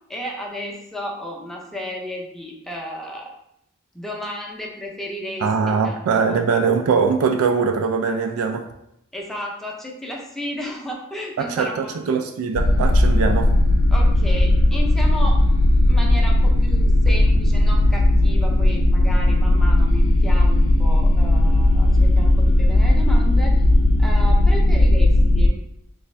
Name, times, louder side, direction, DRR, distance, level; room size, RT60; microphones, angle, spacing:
voice 1, 0.1-3.3 3.9-5.9 6.2-6.4 9.1-11.9 13.9-15.4 15.9-23.7 24.0-25.6, equal, ahead, -2 dB, 0.5 m, -33 dB
voice 2, 5.4-8.7 11.4-13.5, right 5 dB, 80° right, 6 dB, 0.3 m, -21 dB
sound 1, 12.5-25.5, left 1 dB, 70° left, 0.4 m, -16 dB
3.3 x 2.5 x 3.2 m, 0.79 s
head